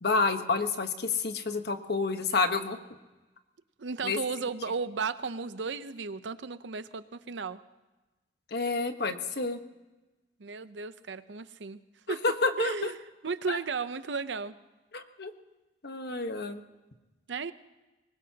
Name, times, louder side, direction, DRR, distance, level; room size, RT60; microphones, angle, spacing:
voice 1, 0.0-2.8 4.0-4.2 8.5-9.6 12.2-12.9 13.5-13.6 14.9-15.3 15.8-16.6, left 3 dB, 65° left, 7 dB, 1.2 m, -29 dB
voice 2, 3.8-7.6 10.4-11.8 12.1-12.2 12.6-13.0 13.2-14.6 17.3-17.5, right 5 dB, 90° right, 13 dB, 0.7 m, -34 dB
23.5 x 20.5 x 2.9 m, 1.1 s
head